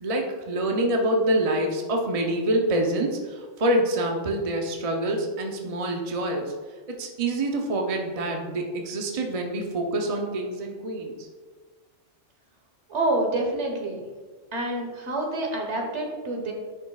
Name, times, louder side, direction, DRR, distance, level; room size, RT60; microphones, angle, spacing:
voice 1, 0.0-6.5 6.9-11.3, right 1 dB, 35° right, 1 dB, 0.7 m, -26 dB
voice 2, 12.9-14.0 14.5-16.5, right 2 dB, 60° right, 1 dB, 1.5 m, -27 dB
10.5 x 5.3 x 2.4 m, 1.4 s
omnidirectional pair, 1.4 m